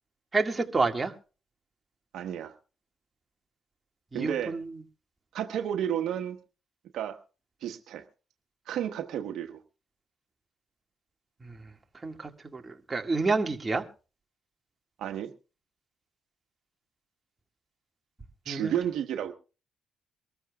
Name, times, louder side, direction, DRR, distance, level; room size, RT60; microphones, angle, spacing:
voice 1, 0.3-1.1 4.1-4.7 11.4-11.6 12.0-13.8 18.5-18.8, right 3 dB, 25° right, 2.0 m, -29 dB
voice 2, 2.1-2.6 4.1-4.5 5.3-6.4 6.9-7.2 7.6-8.0 8.7-9.6 15.0-15.3 18.4-19.3, right 10 dB, 80° right, 1.2 m, -32 dB
23.5 x 14.0 x 2.4 m
cardioid pair, 90°, 0 cm